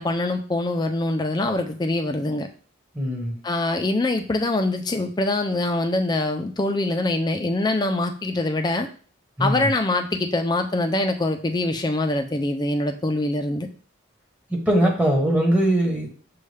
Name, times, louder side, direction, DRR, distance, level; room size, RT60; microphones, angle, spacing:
voice 1, 0.0-2.5 3.4-8.9 9.4-13.7, left 2 dB, 20° left, 6 dB, 0.4 m, -24 dB
voice 2, 3.0-3.3 9.4-9.6 14.5-16.1, right 1 dB, 5° right, -1 dB, 0.9 m, -21 dB
6.4 x 2.3 x 3.2 m, 0.43 s
head